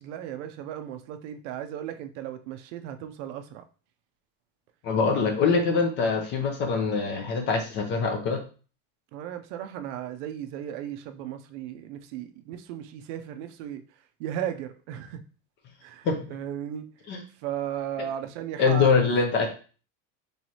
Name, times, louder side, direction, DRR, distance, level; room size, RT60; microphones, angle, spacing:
voice 1, 0.0-3.6 9.1-13.8 14.2-15.2 15.8-16.9 17.4-19.1, right 10 dB, 60° right, 0.5 m, -36 dB
voice 2, 4.8-8.4 16.0-16.2 17.1-17.2 18.6-19.5, left 5 dB, 30° left, 0.5 m, -23 dB
4.5 x 3.1 x 2.8 m
cardioid pair, 175°, 40 cm